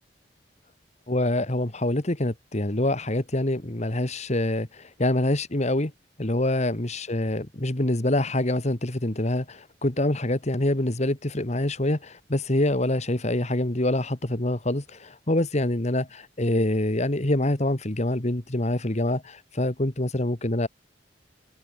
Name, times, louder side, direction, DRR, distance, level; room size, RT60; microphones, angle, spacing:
voice 1, 1.1-5.9 6.2-20.7, left 1 dB, 40° left, 2.1 m, -25 dB
head